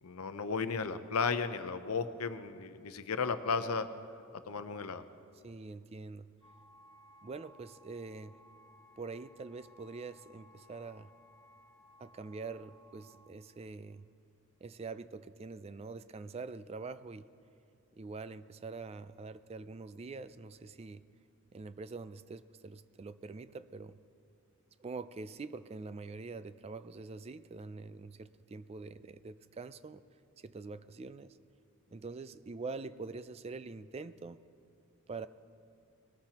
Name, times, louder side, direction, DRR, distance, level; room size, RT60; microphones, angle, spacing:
voice 1, 0.0-3.9 4.3-5.0, left 5 dB, 80° left, 10 dB, 0.7 m, -34 dB
voice 2, 5.4-6.3 7.2-8.4 9.0-11.1 12.0-14.1 14.6-17.3 18.0-21.0 21.5-24.0 24.8-30.0 30.4-31.4 31.9-34.4 35.1-35.3, right 4 dB, 30° right, 14 dB, 0.3 m, -45 dB
sound 1, 6.4-13.3, left 1 dB, 15° left, 1.3 m, -61 dB
20.5 x 19.0 x 2.9 m, 2.5 s
head